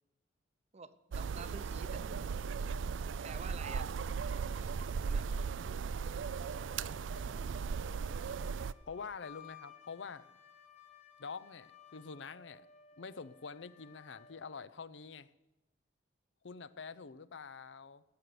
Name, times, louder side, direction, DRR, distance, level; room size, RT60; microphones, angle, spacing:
voice 1, 0.7-2.1 3.2-3.9 4.3-4.4 4.8-5.3, right 4 dB, 35° right, 14 dB, 0.7 m, -49 dB
sound 1, 1.1-8.7, right 5 dB, 80° right, 0.4 m, -37 dB
Wind instrument woodwind instrument, 7.1-14.5, left 7 dB, 35° left, 1.5 m, -58 dB
voice 2, 8.9-10.3 11.2-12.7 13.0-15.3 16.4-18.0, left 5 dB, 75° left, 16 dB, 0.6 m, -46 dB
17.0 x 6.8 x 9.4 m, 0.98 s
head